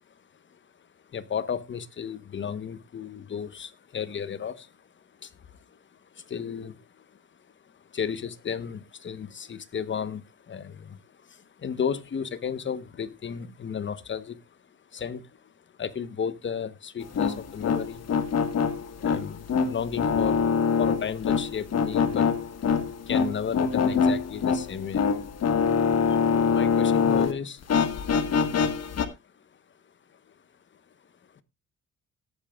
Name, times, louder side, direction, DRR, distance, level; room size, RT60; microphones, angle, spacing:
voice 1, 0.1-18.1 18.5-22.4 23.0-25.5 26.1-28.1 28.4-28.9 29.2-30.3 30.7-30.8 31.3-31.4, left 7 dB, 40° left, 1.0 m, -35 dB
sound 1, 17.0-27.3 27.6-29.1, left 6 dB, 55° left, 1.5 m, -24 dB
18.0 x 8.7 x 2.3 m
cardioid pair, 90°, 30 cm